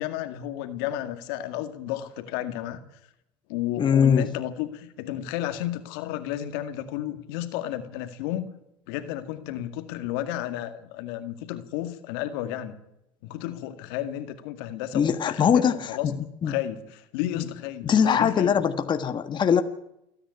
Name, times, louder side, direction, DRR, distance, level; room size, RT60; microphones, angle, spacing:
voice 1, 0.0-2.8 3.5-8.5 8.9-12.8 13.2-16.1 16.4-18.6, left 12 dB, 75° left, 9 dB, 2.0 m, -32 dB
voice 2, 3.8-4.3 14.9-16.1 16.4-16.5 17.4-17.5 17.8-19.6, left 7 dB, 40° left, 8 dB, 1.5 m, -22 dB
28.5 x 10.0 x 9.6 m, 0.83 s
hypercardioid pair, 80°, 12 cm